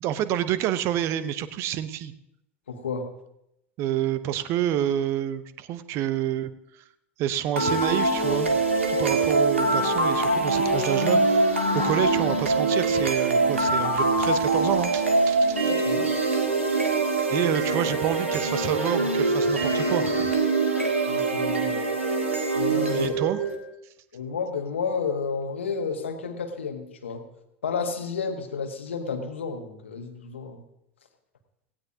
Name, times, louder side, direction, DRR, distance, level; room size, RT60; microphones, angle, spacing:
voice 1, 0.0-2.1 3.8-6.5 7.2-8.6 8.9-11.5 11.7-15.6 17.3-20.3 22.7-23.4, right 11 dB, 40° right, 14 dB, 0.8 m, -28 dB
voice 2, 2.7-3.1 15.7-16.1 21.1-21.8 22.5-23.1 24.1-27.2 27.6-30.6, left 5 dB, 70° left, 6 dB, 1.5 m, -31 dB
sound 1, 7.6-23.5, right 3 dB, 80° right, 1.8 m, -24 dB
17.5 x 16.0 x 2.7 m, 0.83 s
figure-of-eight pair, 80°, 7 cm